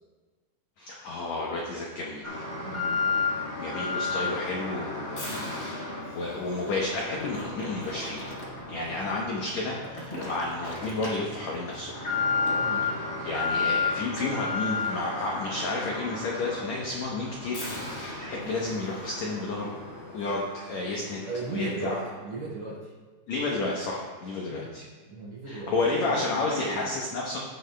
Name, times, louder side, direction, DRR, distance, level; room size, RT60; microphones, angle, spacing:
voice 1, 0.8-2.5 3.6-5.6 6.1-8.2 8.7-12.0 13.2-17.6 17.9-19.7 20.1-21.2 21.5-21.9 23.3-24.8 25.5-27.4, left 2 dB, 80° left, -3 dB, 1.6 m, -31 dB
Alarm, 2.2-20.9 21.2-21.3 22.0-22.1, left 4 dB, 50° left, 1.0 m, -33 dB
voice 2, 21.3-22.9 24.5-24.7 25.1-26.9, right 2 dB, 60° right, -5 dB, 2.1 m, -37 dB
16.0 x 6.7 x 2.2 m, 1.4 s
omnidirectional pair, 4.5 m